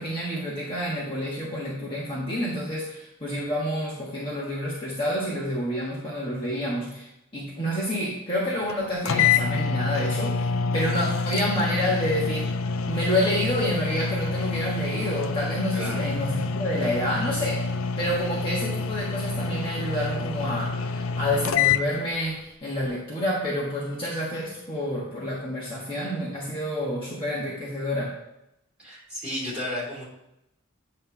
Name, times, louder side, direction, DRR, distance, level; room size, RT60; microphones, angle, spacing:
voice 1, 0.0-7.1 7.3-12.5 12.9-17.7 18.0-28.1, equal, 25° left, -6 dB, 1.3 m, -28 dB
sound 1, 8.7-8.8 9.1-21.9, left 5 dB, 65° left, 0.4 m, -27 dB
voice 2, 28.8-30.0, left 1 dB, 5° right, -8 dB, 3.1 m, -32 dB
9.1 x 3.2 x 5.6 m, 0.85 s
head